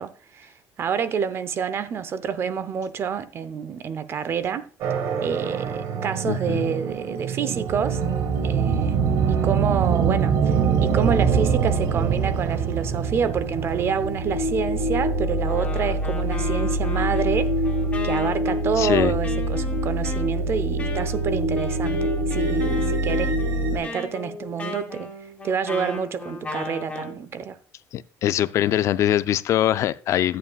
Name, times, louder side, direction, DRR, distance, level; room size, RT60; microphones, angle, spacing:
voice 1, 0.0-4.7 5.2-8.0 8.4-9.0 9.3-10.5 10.8-17.6 18.0-23.4 23.7-25.1 25.4-27.6, right 7 dB, 45° right, 0.6 m, -28 dB
sound 1, 4.8-23.8, right 3 dB, 70° right, 1.3 m, -24 dB
voice 2, 6.3-6.7 18.8-19.1 27.9-30.4, left 12 dB, 55° left, 0.3 m, -22 dB
Wind instrument woodwind instrument, 15.4-27.2, left 3 dB, 20° left, 2.9 m, -36 dB
11.0 x 8.9 x 2.3 m
cardioid pair, 115°, 6 cm